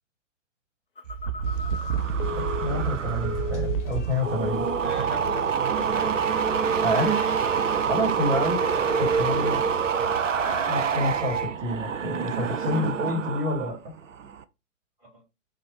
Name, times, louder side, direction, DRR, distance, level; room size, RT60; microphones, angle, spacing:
Telephone, 1.0-4.0 4.3-4.9 5.3-5.6, left 5 dB, 45° left, 0.6 m, -36 dB
sound 1, 1.0-13.7 14.0-14.4, right 7 dB, 75° right, 0.5 m, -26 dB
sound 2, 1.4-11.5, left 1 dB, 30° left, 1.0 m, -43 dB
voice 1, 2.3-4.6 6.8-7.2 7.9-8.6 9.0-9.7 10.7-13.9, left 1 dB, 50° right, -1 dB, 1.5 m, -28 dB
voice 2, 4.8-7.3 8.4-10.3 12.6-13.2 15.0-15.2, right 3 dB, 20° right, -3 dB, 2.1 m, -43 dB
3.1 x 2.4 x 4.3 m, 0.26 s
figure-of-eight pair, 120°, 38 cm